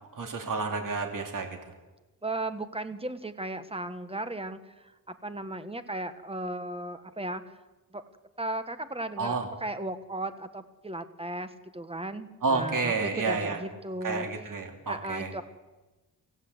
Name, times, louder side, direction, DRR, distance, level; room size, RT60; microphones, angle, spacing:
voice 1, 0.1-1.5 9.2-9.5 12.4-13.6 14.0-15.3, right 4 dB, 60° right, 3 dB, 3.0 m, -30 dB
voice 2, 2.2-7.6 7.9-8.0 8.4-14.3 14.9-15.4, right 2 dB, 15° right, 10 dB, 1.5 m, -36 dB
25.5 x 15.5 x 8.2 m, 1.2 s
wide cardioid pair, 105°, 36 cm